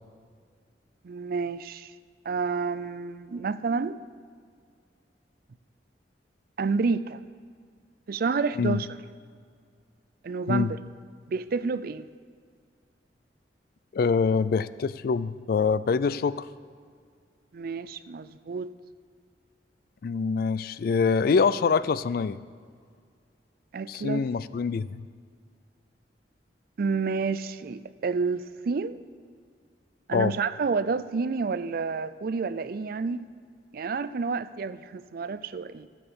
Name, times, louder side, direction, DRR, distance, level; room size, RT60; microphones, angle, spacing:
voice 1, 1.0-1.9 2.2-4.0 6.6-7.2 8.1-8.9 10.2-10.8 11.3-12.1 17.5-18.7 23.7-24.2 26.8-29.0 30.1-33.2 33.7-35.9, right 4 dB, 55° right, 15 dB, 0.4 m, -29 dB
voice 2, 13.9-16.5 20.0-22.4 23.9-25.1 30.1-30.3, left 5 dB, 55° left, 17 dB, 0.3 m, -25 dB
14.0 x 7.6 x 6.9 m, 2.1 s
head